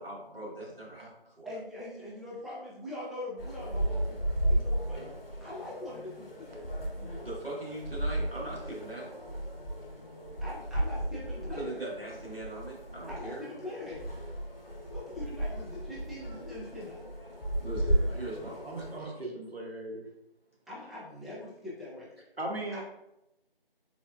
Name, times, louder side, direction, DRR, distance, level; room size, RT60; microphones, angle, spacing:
voice 1, 0.0-1.5 6.9-9.2 11.5-13.5 17.6-19.2, right 1 dB, 70° right, -4 dB, 1.3 m, -41 dB
voice 2, 1.4-4.2 4.5-5.1 5.4-6.5 9.8-9.9 10.4-11.8 13.0-14.0 14.9-17.0 20.7-22.1 22.7-22.8, left 1 dB, ahead, -8 dB, 0.4 m, -42 dB
sound 1, 3.4-19.0, right 1 dB, 70° left, 0.7 m, -34 dB
voice 3, 18.4-20.1 22.4-22.8, right 1 dB, 90° right, 0 dB, 0.9 m, -38 dB
4.0 x 2.3 x 2.2 m, 0.86 s
figure-of-eight pair, 180°, 30 cm